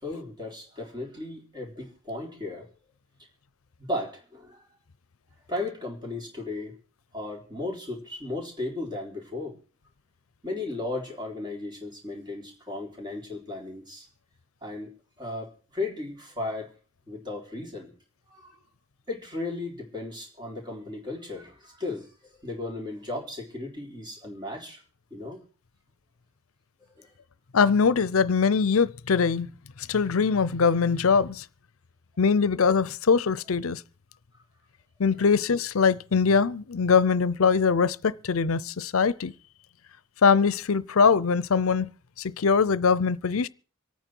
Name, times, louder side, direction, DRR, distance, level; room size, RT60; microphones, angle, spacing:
voice 1, 0.0-2.7 3.8-4.6 5.5-6.7 7.1-9.6 10.4-14.1 14.6-14.9 15.2-16.7 17.1-17.9 18.3-18.6 19.1-22.1 22.4-24.8 25.1-25.4 26.9-27.1, left 2 dB, 20° right, 3.9 m, -35 dB
voice 2, 27.5-29.5 29.9-31.4 32.2-33.8 35.0-39.3 40.2-41.9 42.2-43.5, left 5 dB, 75° left, 0.6 m, -22 dB
26.0 x 9.2 x 4.6 m
head